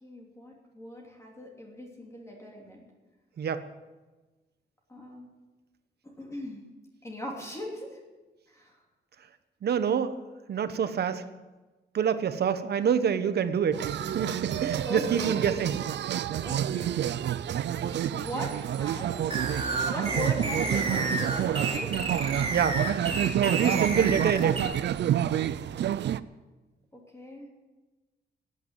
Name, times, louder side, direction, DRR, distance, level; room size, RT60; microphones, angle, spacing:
voice 1, 0.0-2.8 4.9-5.3 6.0-6.6 7.0-8.0 8.5-8.8 14.9-15.6 16.3-19.2 19.9-21.9 26.9-27.5, equal, 15° left, -1 dB, 3.0 m, -39 dB
voice 2, 9.6-10.1 10.5-11.2 11.9-15.8 22.5-22.8 23.4-24.6, right 7 dB, 65° right, 11 dB, 1.1 m, -26 dB
sound 1, 13.7-26.2, right 10 dB, 85° right, 0.5 m, -29 dB
sound 2, 19.3-24.6, right 3 dB, 30° right, 2.7 m, -30 dB
16.0 x 9.3 x 8.9 m, 1.2 s
wide cardioid pair, 155°, 18 cm